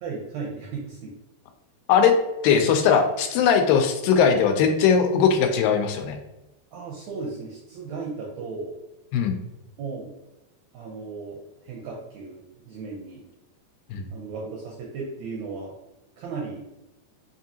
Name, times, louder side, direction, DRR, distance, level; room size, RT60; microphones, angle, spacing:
voice 1, 0.0-1.1 6.7-8.8 9.8-10.2 10.7-13.2 14.1-15.7 16.2-16.6, right 4 dB, 80° right, -3 dB, 1.6 m, -35 dB
voice 2, 2.4-6.2 9.1-9.4 13.9-14.1, left 7 dB, 85° left, 6 dB, 2.3 m, -20 dB
5.4 x 2.6 x 2.7 m, 0.97 s
omnidirectional pair, 3.9 m